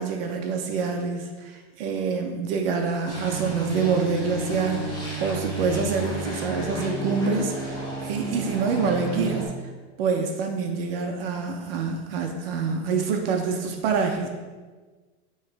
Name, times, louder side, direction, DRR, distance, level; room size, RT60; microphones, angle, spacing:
voice 1, 0.0-9.5 10.0-14.3, right 5 dB, 60° right, 3 dB, 0.7 m, -26 dB
sound 1, 3.1-9.5, right 1 dB, 10° left, 0.9 m, -32 dB
9.2 x 3.2 x 3.4 m, 1.3 s
supercardioid pair, 180°, 33 cm